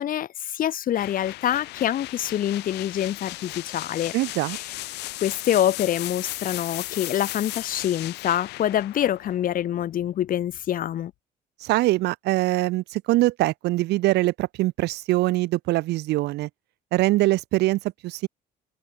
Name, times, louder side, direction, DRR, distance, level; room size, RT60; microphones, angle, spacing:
voice 1, 0.0-4.1 4.5-4.7 5.2-11.1, left 11 dB, 55° left, 1.6 m, -26 dB
sound 1, 0.9-10.7, left 19 dB, 85° left, 7.7 m, -36 dB
voice 2, 4.1-4.6 11.6-16.5 16.9-18.3, right 18 dB, 80° right, 1.9 m, -23 dB
cardioid pair, 110°, 17 cm